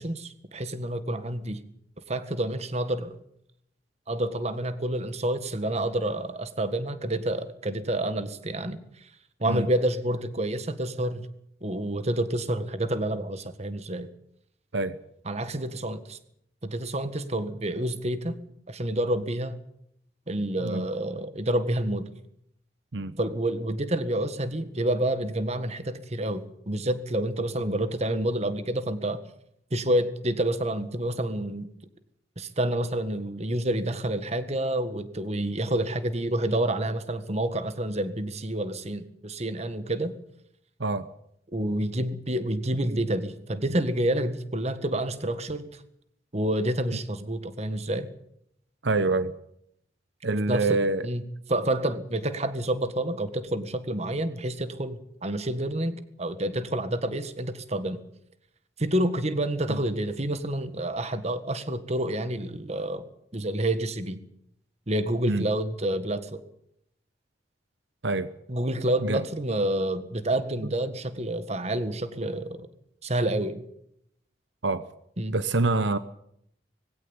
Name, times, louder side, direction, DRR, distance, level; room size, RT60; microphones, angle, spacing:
voice 1, 0.0-1.6 2.1-3.1 4.1-9.1 9.4-11.3 11.6-14.1 15.2-16.2 16.6-18.4 18.7-19.6 20.3-22.1 23.2-29.2 29.7-31.7 32.4-40.1 41.5-45.8 46.3-48.1 50.5-51.2 51.5-58.0 58.8-63.1 63.3-64.2 64.9-66.4 68.5-72.7 73.0-73.6 75.2-75.3, right 1 dB, 35° right, 11 dB, 1.7 m, -28 dB
voice 2, 48.8-49.3 50.2-51.1 59.7-59.8 65.3-65.4 68.0-68.3 69.0-69.2 74.6-74.8 75.3-76.0, right 3 dB, 75° right, 13 dB, 0.9 m, -26 dB
20.5 x 16.5 x 8.9 m, 0.74 s
head